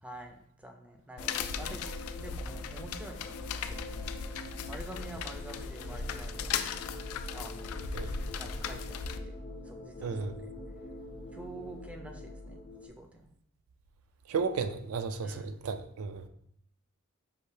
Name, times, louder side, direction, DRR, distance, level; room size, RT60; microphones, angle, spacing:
voice 1, 0.0-4.1 4.7-6.5 7.3-7.8 8.4-9.4 9.6-10.5 11.3-13.3 15.2-15.5, right 1 dB, 5° right, 3 dB, 0.4 m, -48 dB
sound 1, 1.2-9.2, left 6 dB, 75° left, 0.3 m, -38 dB
sound 2, 1.2-12.9, left 2 dB, 35° left, 0.6 m, -44 dB
voice 2, 10.0-10.3 14.3-16.3, right 5 dB, 75° right, 9 dB, 0.4 m, -34 dB
5.5 x 2.6 x 3.2 m, 0.71 s
head